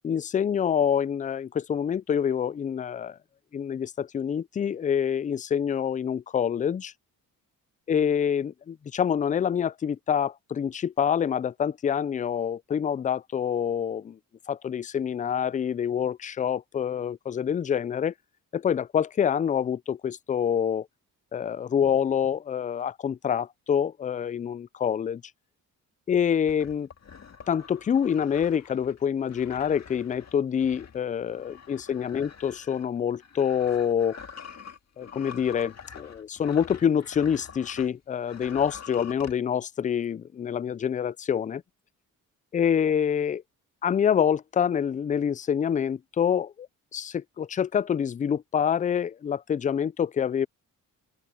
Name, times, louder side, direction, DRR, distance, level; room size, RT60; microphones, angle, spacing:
voice 1, 0.0-3.2 3.5-6.9 7.9-14.2 14.5-18.1 18.5-20.9 21.3-25.2 26.1-26.9 27.5-34.2 35.0-41.6 42.5-43.4 43.8-46.7 46.9-50.5, left 8 dB, 25° left, 0.3 m, -26 dB
sound 1, 26.5-37.9 38.2-39.4, left 6 dB, 50° left, 2.1 m, -46 dB
open air
cardioid pair, 75°, 34 cm